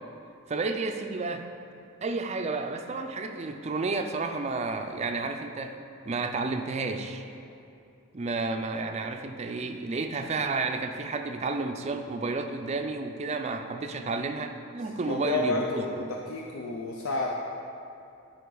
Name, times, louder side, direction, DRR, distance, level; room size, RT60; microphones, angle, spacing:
voice 1, 0.5-1.5 2.0-5.8 6.1-7.2 8.1-15.9, right 3 dB, 30° right, 6 dB, 0.4 m, -31 dB
voice 2, 15.0-17.3, left 3 dB, 75° left, -1 dB, 0.6 m, -30 dB
11.0 x 5.0 x 3.9 m, 2.6 s
head